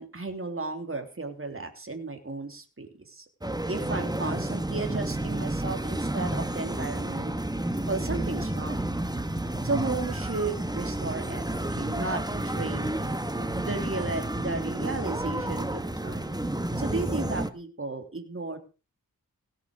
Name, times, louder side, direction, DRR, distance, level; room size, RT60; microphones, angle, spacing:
voice 1, 0.0-3.2 3.7-7.3 7.9-8.9 9.6-13.2 13.5-16.4 16.8-18.6, right 3 dB, 40° right, 5 dB, 3.1 m, -34 dB
sound 1, 3.4-17.5, right 1 dB, 10° right, 1.3 m, -31 dB
17.5 x 8.7 x 6.6 m, 0.34 s
wide cardioid pair, 75°, 35 cm